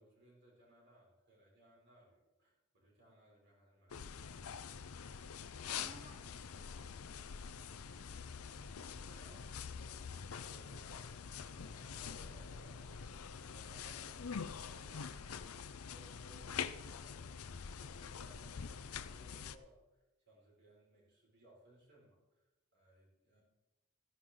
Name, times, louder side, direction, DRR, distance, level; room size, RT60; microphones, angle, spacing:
voice 1, 0.0-4.6 8.3-15.2 15.9-23.4, right 1 dB, 50° right, -3 dB, 5.4 m, -65 dB
sound 1, 3.9-19.6, left 6 dB, 80° left, 0.6 m, -45 dB
voice 2, 5.8-7.6 14.9-15.4, right 1 dB, 25° right, 0 dB, 1.3 m, -61 dB
14.5 x 11.0 x 3.9 m, 1.0 s
head